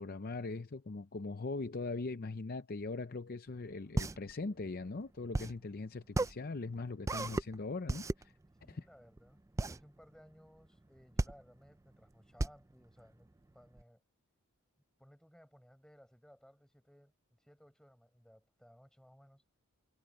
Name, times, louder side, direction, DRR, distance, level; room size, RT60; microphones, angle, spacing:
voice 1, 0.0-8.3 8.7-8.8, left 3 dB, 40° left, 0.6 m, -40 dB
sound 1, 3.5-13.8, right 2 dB, 15° right, 0.4 m, -37 dB
voice 2, 8.6-14.0 15.0-19.4, equal, 5° left, 5.6 m, -61 dB
head